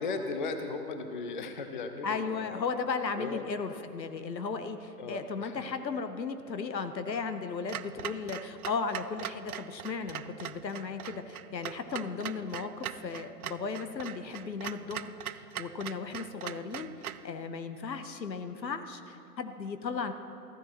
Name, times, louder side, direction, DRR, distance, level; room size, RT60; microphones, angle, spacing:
voice 1, 0.0-2.6 3.2-3.4 5.0-5.6, left 4 dB, 30° left, 7 dB, 0.5 m, -36 dB
voice 2, 2.0-20.1, left 5 dB, 85° left, 9 dB, 1.1 m, -36 dB
Clock, 7.7-17.3, right 10 dB, 65° right, 0.5 m, -41 dB
14.5 x 14.5 x 3.0 m, 2.7 s
hypercardioid pair, 140°, 50 cm